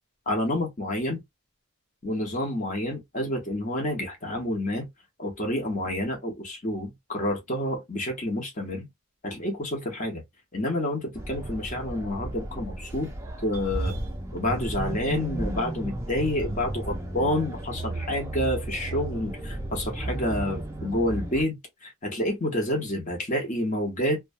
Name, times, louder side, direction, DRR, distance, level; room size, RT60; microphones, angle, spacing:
voice 1, 0.3-1.2 2.0-4.9 5.2-8.9 9.2-10.2 10.5-13.1 13.4-13.9 14.3-24.2, left 1 dB, 35° left, 1.0 m, -29 dB
sound 1, 11.1-21.4, right 1 dB, 15° right, 0.5 m, -34 dB
2.6 x 2.3 x 2.5 m
head